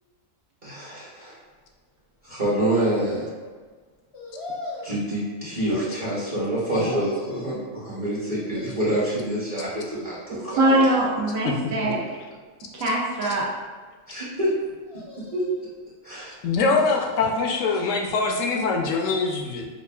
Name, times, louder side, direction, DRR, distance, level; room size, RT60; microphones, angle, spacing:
voice 1, 0.6-1.4 2.2-3.3 4.8-10.8 14.1-14.5 15.3-15.4 16.0-16.3 17.7-17.8, right 1 dB, 30° right, -8 dB, 0.8 m, -27 dB
sound 1, 2.7-3.5 4.1-5.0 5.7-6.5 6.8-7.6 8.2-9.1 10.3-11.2 11.7-12.4 13.0-13.8 14.8-15.7 16.4-17.3 17.7-17.8, left 2 dB, 35° left, 0.6 m, -41 dB
voice 2, 10.6-12.0 12.7-13.5, right 1 dB, 80° right, -5 dB, 1.1 m, -22 dB
voice 3, 16.4-19.6, left 4 dB, 75° left, 2 dB, 0.9 m, -23 dB
5.4 x 2.4 x 2.2 m, 1.4 s
omnidirectional pair, 1.4 m